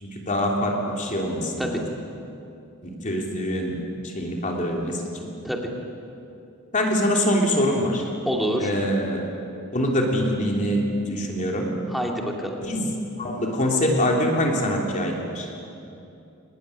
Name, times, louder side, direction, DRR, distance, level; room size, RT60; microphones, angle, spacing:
voice 1, 0.0-1.8 2.8-3.8 4.0-5.0 6.7-8.0 8.6-9.2 9.7-10.8 11.1-11.7 12.6-15.5, equal, 35° left, 0 dB, 3.2 m, -24 dB
voice 2, 8.2-8.7 11.9-12.6, equal, ahead, 0 dB, 2.8 m, -27 dB
24.0 x 19.5 x 10.0 m, 2.7 s
head